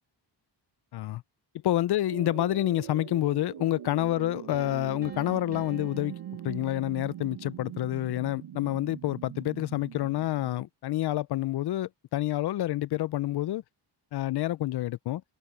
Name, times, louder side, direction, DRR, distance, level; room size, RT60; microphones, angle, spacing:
voice 1, 0.9-1.2 1.6-6.1 6.4-13.6 14.1-15.2, left 14 dB, 60° left, 0.5 m, -28 dB
sound 1, 2.1-10.6, right 11 dB, 85° right, 1.2 m, -42 dB
Piano, 4.5-7.4, right 3 dB, 20° right, 2.5 m, -50 dB
wide cardioid pair, 135°, 44 cm